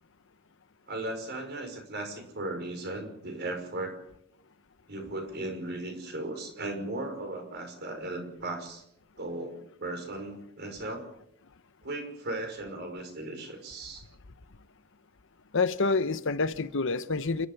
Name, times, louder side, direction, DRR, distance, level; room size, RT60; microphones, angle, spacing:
voice 1, 0.9-4.0 4.9-8.8 9.2-11.0 11.8-14.0, right 2 dB, 55° right, 5.9 m, -37 dB
voice 2, 15.5-17.5, left 3 dB, 65° left, 0.9 m, -27 dB
29.0 x 13.5 x 7.0 m
head